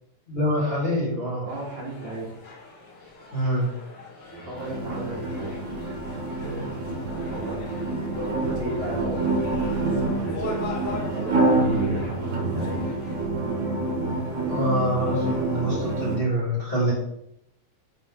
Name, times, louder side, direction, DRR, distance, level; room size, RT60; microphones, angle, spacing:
voice 1, 0.3-1.4 3.3-3.7 14.5-16.9, equal, 20° left, -7 dB, 2.7 m, -25 dB
voice 2, 1.4-2.4 4.3-7.0 7.3-12.9, right 1 dB, 65° right, -5 dB, 3.6 m, -35 dB
sound 1, 1.5-13.3, left 3 dB, 50° left, 3.7 m, -42 dB
sound 2, 4.5-16.2, right 2 dB, 85° right, 0.6 m, -27 dB
11.0 x 3.9 x 3.9 m, 0.77 s
omnidirectional pair, 3.6 m